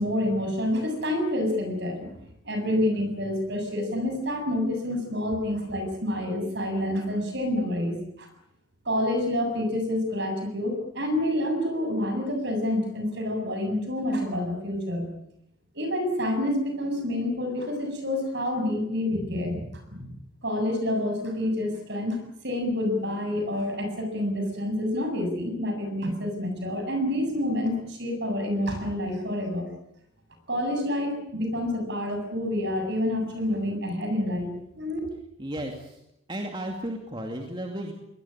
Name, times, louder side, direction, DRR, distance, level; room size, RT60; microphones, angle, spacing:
voice 1, 0.0-2.2 2.4-8.3 8.9-15.1 15.7-20.1 20.4-29.7 30.5-35.0, left 1 dB, 55° right, 5 dB, 7.5 m, -28 dB
voice 2, 35.4-36.0 36.3-37.9, right 1 dB, 20° right, 2 dB, 2.6 m, -34 dB
23.0 x 19.5 x 9.9 m, 0.81 s
head